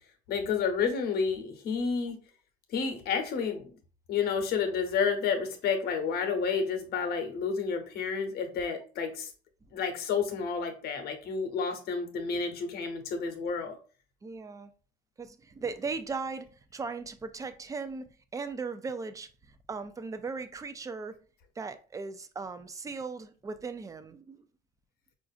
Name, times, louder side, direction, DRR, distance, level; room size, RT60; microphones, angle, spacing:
voice 1, 0.3-2.2 2.7-3.7 4.1-9.3 9.7-13.8, left 5 dB, 70° left, 0.9 m, -30 dB
voice 2, 14.2-14.7 15.2-19.3 19.7-21.2 21.6-24.5, right 4 dB, 20° right, 0.4 m, -38 dB
4.7 x 2.5 x 2.4 m
cardioid pair, 110°, 17 cm